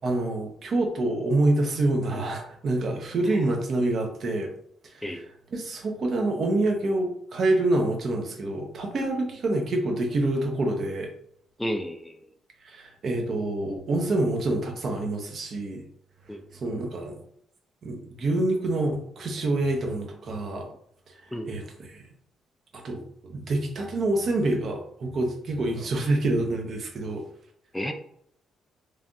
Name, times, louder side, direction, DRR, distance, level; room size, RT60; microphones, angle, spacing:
voice 1, 0.0-4.5 4.8-11.1 12.6-15.8 16.5-17.2 17.8-20.7 21.1-22.0 22.7-27.2, right 2 dB, 55° right, 2 dB, 0.7 m, -27 dB
voice 2, 11.6-12.1 16.3-16.4 21.3-21.5 27.7-27.9, equal, 5° left, 5 dB, 0.4 m, -31 dB
3.2 x 2.3 x 2.6 m, 0.68 s
cardioid pair, 90°, 0 cm